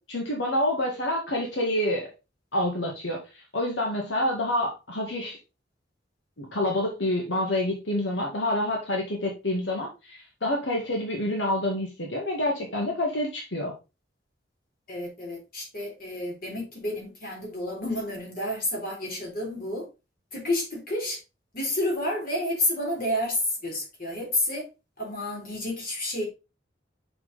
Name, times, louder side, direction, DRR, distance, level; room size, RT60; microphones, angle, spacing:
voice 1, 0.1-2.1 2.5-3.2 3.5-5.4 6.4-13.7, left 1 dB, 85° left, 0 dB, 1.9 m, -27 dB
voice 2, 14.9-19.9 20.3-21.2 21.5-24.7 25.0-26.3, left 1 dB, 50° left, -1 dB, 3.6 m, -30 dB
5.9 x 5.9 x 4.1 m, 0.28 s
head